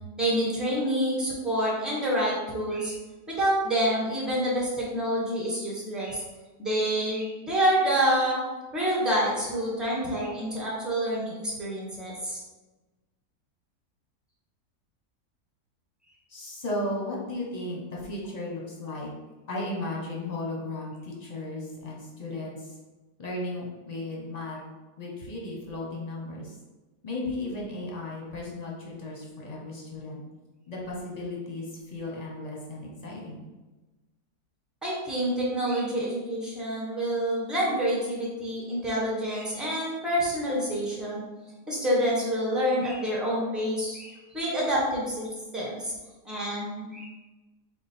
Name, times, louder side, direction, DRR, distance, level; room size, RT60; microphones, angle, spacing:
voice 1, 0.2-2.9 3.3-6.2 6.6-8.4 8.7-12.4 34.8-41.2 41.7-45.3 45.5-45.9 46.2-47.1, equal, ahead, -6 dB, 0.9 m, -27 dB
voice 2, 16.3-19.1 19.5-22.7 23.2-24.6 25.0-26.6 27.0-30.2 30.7-33.4, left 2 dB, 35° left, -3 dB, 0.8 m, -35 dB
4.4 x 2.4 x 4.3 m, 1.2 s
omnidirectional pair, 1.7 m